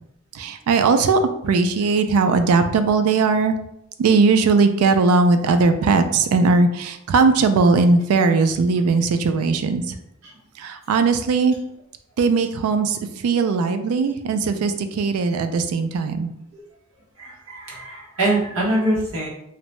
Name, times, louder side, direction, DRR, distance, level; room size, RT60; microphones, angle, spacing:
voice 1, 0.3-1.2 1.4-3.5 4.0-9.8 10.6-11.5 12.2-16.3, right 4 dB, 85° right, 9 dB, 0.3 m, -19 dB
voice 2, 17.2-19.3, right 1 dB, 70° right, -5 dB, 1.0 m, -23 dB
2.7 x 2.1 x 3.0 m, 0.80 s
head